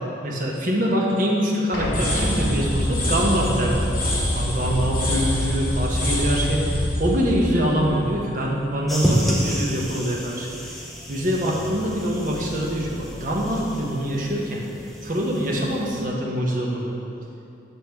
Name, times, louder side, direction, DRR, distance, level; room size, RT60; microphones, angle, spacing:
voice 1, 0.2-3.9 4.3-10.5 11.1-14.6 15.0-16.8, equal, 45° right, -2 dB, 0.9 m, -24 dB
sound 1, 1.7-7.1, left 1 dB, 85° left, 1.2 m, -37 dB
sound 2, 1.7-8.6, equal, 45° left, 1.6 m, -24 dB
sound 3, 8.9-16.1, equal, ahead, 0.6 m, -30 dB
6.9 x 6.0 x 3.5 m, 2.6 s
head